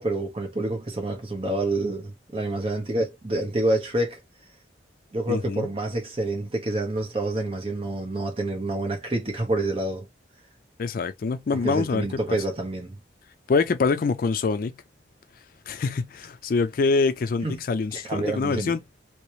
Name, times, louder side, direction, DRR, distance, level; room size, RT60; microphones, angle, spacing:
voice 1, 0.0-4.2 5.1-10.1 11.5-13.0 17.4-17.5 18.1-18.7, right 2 dB, 30° right, 1.1 m, -27 dB
voice 2, 5.3-5.7 10.8-12.4 13.5-14.8 15.7-18.8, left 4 dB, 50° left, 0.4 m, -25 dB
3.0 x 2.9 x 3.1 m
head